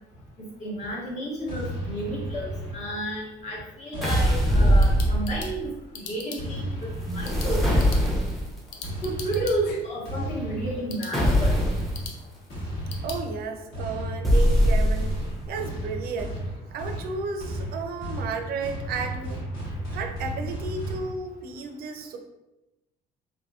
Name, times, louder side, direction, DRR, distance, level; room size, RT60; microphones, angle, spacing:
voice 1, 0.6-7.8 9.0-11.6, right 1 dB, 45° left, -4 dB, 1.0 m, -32 dB
sound 1, 1.5-3.2 3.9-5.7 6.4-8.0 8.8-21.1, equal, 70° left, 1.2 m, -34 dB
sound 2, 4.0-5.6 7.0-8.6 11.1-12.0 14.2-15.4, equal, ahead, 0.5 m, -21 dB
sound 3, 4.7-13.2, left 5 dB, 85° left, 0.5 m, -44 dB
voice 2, 13.0-15.1 15.5-16.4 16.7-19.4 19.9-22.2, right 4 dB, 65° right, 6 dB, 0.4 m, -33 dB
2.8 x 2.6 x 2.3 m, 0.97 s
cardioid pair, 110°, 17 cm